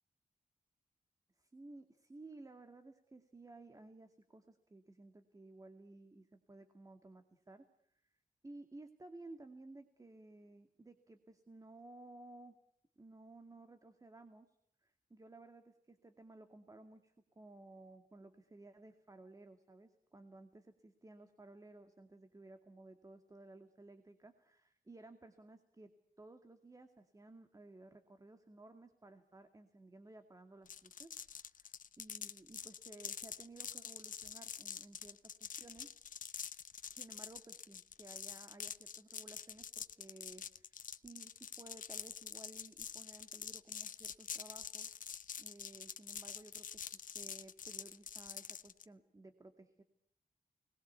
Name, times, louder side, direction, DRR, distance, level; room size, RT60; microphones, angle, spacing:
voice 1, 1.4-7.7 7.9-8.0 8.4-12.6 13.0-14.6 14.8-35.9 36.9-44.9 45.4-49.8, right 2 dB, 25° right, 7 dB, 2.2 m, -56 dB
sound 1, 30.7-48.9, left 7 dB, 70° left, 1.1 m, -46 dB
29.5 x 20.5 x 8.2 m, 0.75 s
wide cardioid pair, 125°, 14 cm